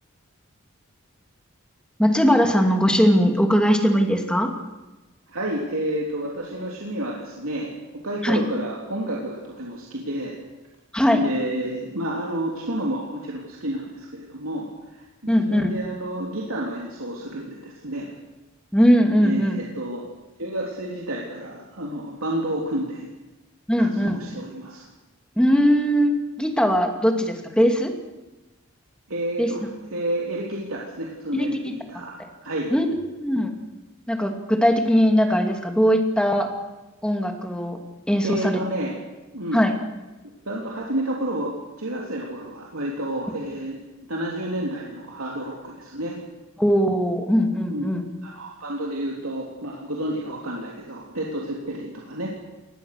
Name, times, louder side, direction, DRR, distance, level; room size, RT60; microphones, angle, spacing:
voice 1, 2.0-4.5 8.2-8.4 10.9-11.2 15.3-15.7 18.7-19.6 23.7-24.2 25.4-26.1 26.4-27.9 29.4-29.5 31.3-31.7 32.7-33.5 34.1-36.5 37.0-37.8 38.1-38.6 39.5-39.7 46.6-48.0, equal, 5° left, 4 dB, 2.7 m, -20 dB
voice 2, 5.3-7.7 8.0-10.4 11.1-18.1 19.2-20.0 20.4-23.1 23.8-24.8 29.1-32.7 38.2-38.9 39.3-39.6 40.4-43.8 44.1-46.2 47.7-47.9 48.2-52.3, right 1 dB, 90° right, -2 dB, 3.3 m, -30 dB
23.0 x 19.5 x 6.7 m, 1.1 s
head